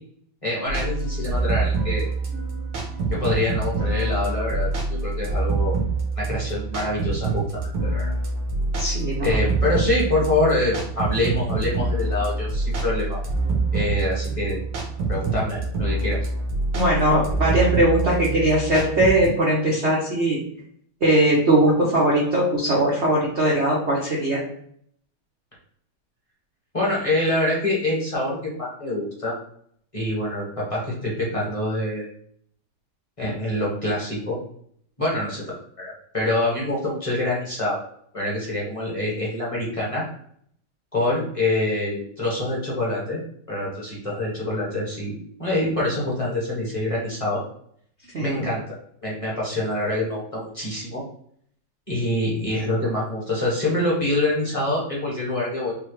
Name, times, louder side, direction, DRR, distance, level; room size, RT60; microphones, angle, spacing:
voice 1, 0.4-2.1 3.1-5.8 6.2-8.1 9.2-13.2 13.7-14.6 15.1-16.2 26.7-29.3 29.9-32.1 33.2-34.4 35.0-37.8 38.1-40.0 40.9-43.2 43.5-47.4 48.2-48.6 49.0-51.0 51.9-55.7, left 1 dB, 20° left, -6 dB, 1.0 m, -25 dB
sound 1, 0.7-19.3, right 3 dB, 85° right, 1.9 m, -26 dB
voice 2, 8.8-9.4 16.7-20.4 21.0-24.4 48.1-48.4, right 1 dB, 55° right, -4 dB, 0.7 m, -20 dB
5.4 x 2.3 x 3.1 m, 0.64 s
omnidirectional pair, 2.3 m